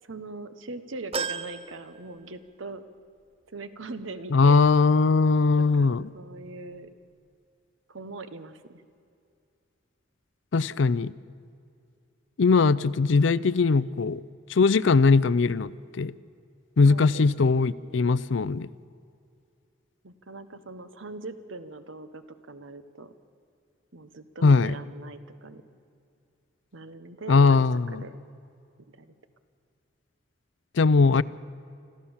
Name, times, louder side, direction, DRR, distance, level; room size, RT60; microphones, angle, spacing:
voice 1, 0.0-2.8 3.5-4.6 5.6-6.9 7.9-8.8 13.8-13.9 16.8-18.1 20.0-23.1 23.9-25.6 26.7-27.7 27.9-28.1 29.0-29.1, right 3 dB, 80° right, 11 dB, 1.1 m, -41 dB
sound 1, 1.1-2.8 3.2-3.3 4.5-4.6, right 5 dB, 30° right, 0.5 m, -35 dB
voice 2, 4.3-6.1 10.5-11.1 12.4-14.2 14.5-16.1 16.8-18.7 24.4-24.8 27.3-28.0 30.8-31.2, left 4 dB, 70° left, 19 dB, 0.5 m, -20 dB
26.0 x 14.0 x 7.2 m, 2.5 s
head